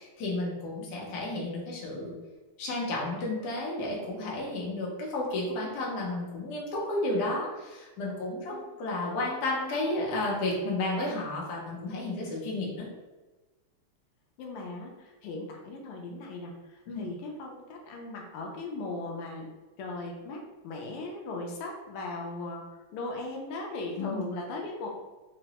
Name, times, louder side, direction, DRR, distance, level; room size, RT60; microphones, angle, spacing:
voice 1, 0.0-2.1 2.6-12.9 16.9-17.1 24.0-24.3, left 2 dB, 60° left, -4 dB, 1.1 m, -32 dB
voice 2, 14.4-19.5 19.8-22.6 22.9-24.9, left 2 dB, 80° left, 0 dB, 1.5 m, -38 dB
3.8 x 2.1 x 2.8 m, 1.2 s
omnidirectional pair, 2.4 m